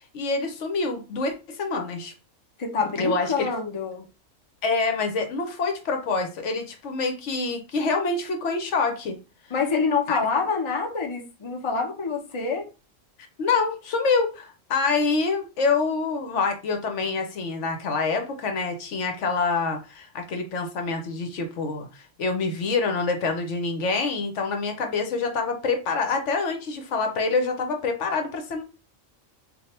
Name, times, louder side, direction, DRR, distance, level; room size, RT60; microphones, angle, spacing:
voice 1, 0.1-2.1 3.0-3.5 4.6-9.2 10.1-10.2 13.4-28.6, left 4 dB, 70° left, 1.0 m, -26 dB
voice 2, 2.6-4.0 9.5-12.7, left 5 dB, 30° left, 0.6 m, -26 dB
3.4 x 2.4 x 4.2 m
omnidirectional pair, 1.3 m